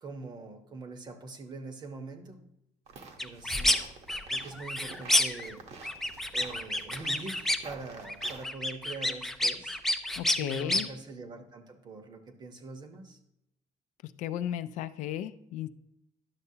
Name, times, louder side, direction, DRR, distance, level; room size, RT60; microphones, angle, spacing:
voice 1, 0.0-2.4 3.2-3.8 4.3-5.6 6.3-9.8 10.4-13.2, right 3 dB, 35° right, 7 dB, 0.9 m, -43 dB
sound 1, 2.9-8.5, right 4 dB, 60° right, 1.0 m, -49 dB
sound 2, 3.2-3.8 4.1-5.5 5.8-7.7 8.0-10.8, left 1 dB, 5° left, 0.4 m, -29 dB
voice 2, 10.2-10.9 14.0-15.7, left 11 dB, 80° left, 12 dB, 0.4 m, -35 dB
10.5 x 6.7 x 2.8 m, 0.85 s
cardioid pair, 145°, 13 cm